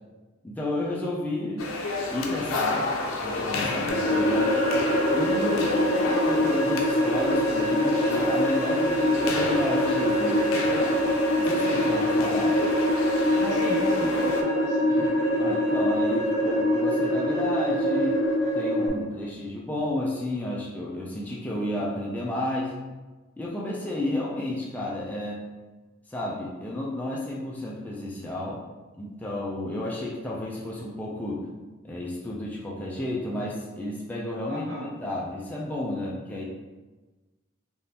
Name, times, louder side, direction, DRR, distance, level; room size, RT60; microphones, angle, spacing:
voice 1, 0.4-1.7 2.1-4.6 5.1-10.8 11.4-12.6 15.4-18.2 18.5-22.7 23.4-25.4 26.1-28.6 29.0-31.5 31.8-34.6 35.0-36.4, left 1 dB, 10° left, -4 dB, 0.3 m, -32 dB
sound 1, 1.6-14.4, left 3 dB, 85° left, 0.5 m, -30 dB
sound 2, 3.9-18.9, equal, 50° left, 1.0 m, -24 dB
voice 2, 10.6-11.0 13.3-15.1 34.4-35.0, left 1 dB, 55° right, -5 dB, 0.9 m, -37 dB
3.5 x 2.5 x 2.8 m, 1.2 s
head